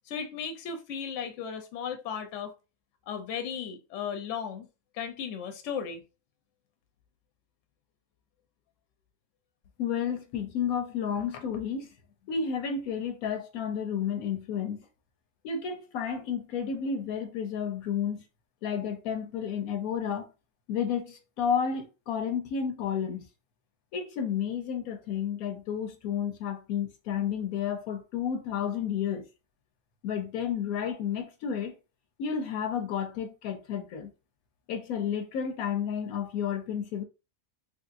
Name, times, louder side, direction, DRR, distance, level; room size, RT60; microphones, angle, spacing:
voice 1, 0.0-2.5 3.1-4.7 4.9-6.0, left 7 dB, 65° left, 0.9 m, -35 dB
voice 2, 9.8-11.9 12.3-14.9 15.4-18.2 18.6-20.3 20.7-23.3 23.9-29.2 30.0-31.7 32.2-34.1 34.7-37.0, left 7 dB, 85° left, 1.1 m, -31 dB
3.2 x 2.7 x 2.5 m
omnidirectional pair, 1.5 m